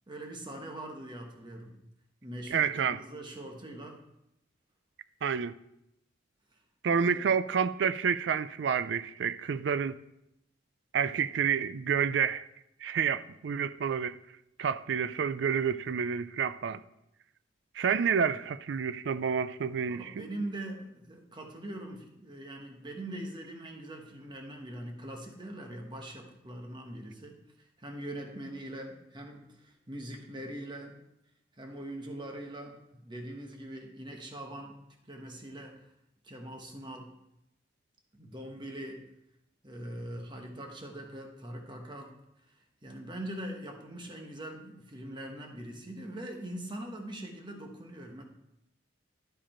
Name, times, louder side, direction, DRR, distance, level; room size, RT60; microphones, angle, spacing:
voice 1, 0.1-1.7 2.2-4.0 7.0-7.2 19.8-31.0 31.6-35.9 36.2-37.1 38.1-39.0 39.6-42.1 42.5-48.2, right 1 dB, 25° right, 1.2 m, -42 dB
voice 2, 2.5-3.0 5.2-5.5 6.8-9.9 10.9-12.5 12.8-14.2 14.6-16.8 17.8-20.1, right 7 dB, 60° right, 0.4 m, -29 dB
11.5 x 4.9 x 4.4 m
head